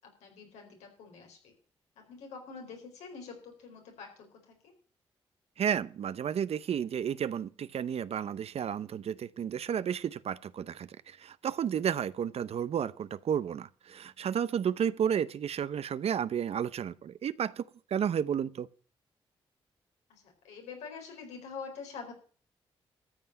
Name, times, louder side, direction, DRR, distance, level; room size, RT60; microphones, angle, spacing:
voice 1, 0.2-1.5 2.0-4.7 20.1-22.1, left 5 dB, 90° left, 4.5 m, -46 dB
voice 2, 5.6-18.7, right 8 dB, 65° right, 0.7 m, -32 dB
13.5 x 5.6 x 8.9 m
supercardioid pair, 45°, 11 cm